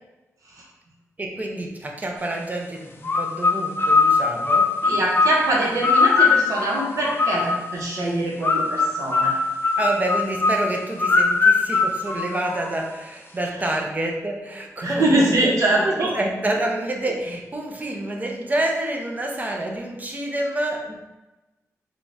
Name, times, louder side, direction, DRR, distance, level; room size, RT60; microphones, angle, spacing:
voice 1, 1.2-4.7 9.8-15.5 15.8-20.9, right 1 dB, 30° right, 1 dB, 0.6 m, -28 dB
sound 1, 3.0-7.8 8.4-12.9, left 4 dB, 40° left, 0.4 m, -21 dB
voice 2, 4.8-9.3 14.8-16.1, right 1 dB, 70° right, -3 dB, 1.0 m, -23 dB
3.7 x 2.3 x 3.8 m, 1.1 s
wide cardioid pair, 90°, 6 cm